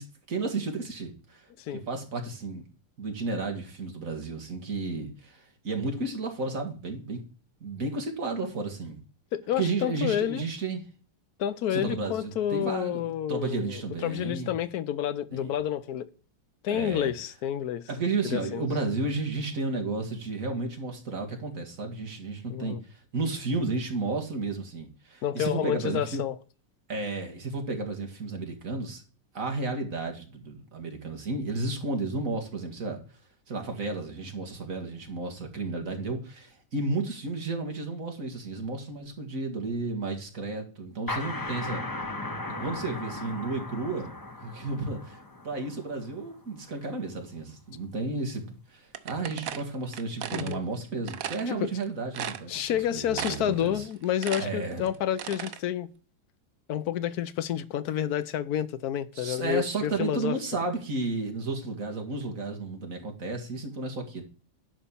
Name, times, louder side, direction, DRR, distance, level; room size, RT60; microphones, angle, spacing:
voice 1, 0.0-1.4 1.7-2.6 3.0-7.2 7.6-9.0 9.6-10.8 11.7-13.0 13.3-14.5 15.3-15.5 16.7-17.1 17.9-26.2 26.9-29.0 29.3-33.0 33.5-41.8 42.6-44.2 44.4-45.2 45.4-53.9 54.4-54.8 59.2-64.2, right 3 dB, 40° right, 2.2 m, -32 dB
voice 2, 9.3-10.4 11.4-16.1 16.6-17.9 18.2-18.6 22.5-22.8 25.2-26.3 50.3-50.6 51.5-51.7 52.5-55.9 56.7-60.4, left 10 dB, 65° left, 1.0 m, -29 dB
sound 1, 41.1-46.5, left 2 dB, 20° left, 0.6 m, -37 dB
sound 2, 48.9-50.6 51.1-51.5 51.8-51.9 52.1-52.8 53.1-53.6 53.9-55.6, right 10 dB, 65° right, 0.8 m, -35 dB
11.0 x 4.3 x 7.1 m
omnidirectional pair, 2.2 m